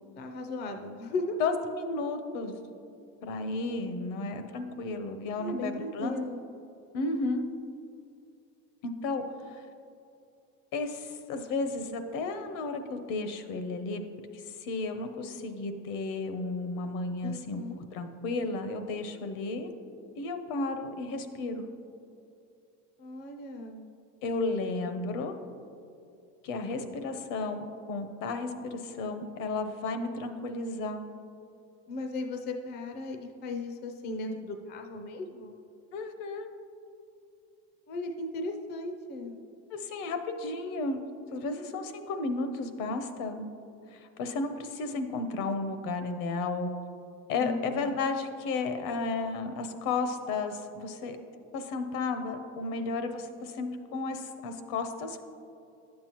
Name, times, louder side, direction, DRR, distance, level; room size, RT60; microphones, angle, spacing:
voice 1, 0.2-1.4 5.4-6.4 17.2-17.8 23.0-23.8 31.9-35.6 37.9-39.4 47.4-47.9, left 2 dB, 30° left, 5 dB, 0.5 m, -36 dB
voice 2, 1.4-2.5 3.2-6.2 6.9-7.4 8.8-9.6 10.7-14.0 14.3-17.6 17.9-19.7 20.2-21.6 24.2-25.3 26.4-31.0 35.9-36.5 39.7-41.0 41.3-43.5 43.9-46.7 47.3-51.2 51.5-55.2, left 3 dB, 60° left, 8 dB, 0.8 m, -33 dB
11.0 x 7.5 x 3.0 m, 2.6 s
cardioid pair, 145°, 34 cm